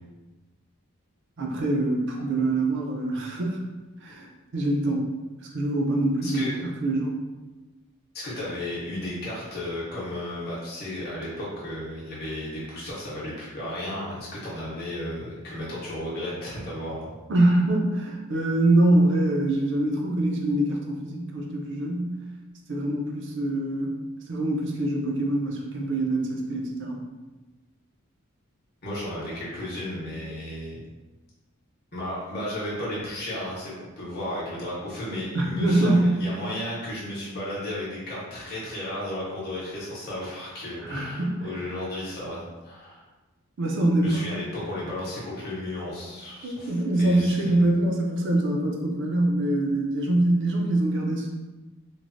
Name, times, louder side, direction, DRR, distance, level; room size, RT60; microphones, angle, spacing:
voice 1, 1.4-3.6 4.0-4.3 4.5-5.1 5.5-6.5 6.8-7.1 17.3-22.1 22.7-23.9 24.3-27.0 35.3-36.2 40.8-41.5 43.6-44.2 46.4-51.3, right 1 dB, 55° right, 0 dB, 0.4 m, -24 dB
voice 2, 6.2-6.6 8.1-17.1 28.8-30.8 31.9-43.0 44.0-46.7 47.0-47.5, left 1 dB, 45° left, -7 dB, 0.8 m, -34 dB
3.1 x 2.0 x 2.5 m, 1.2 s
head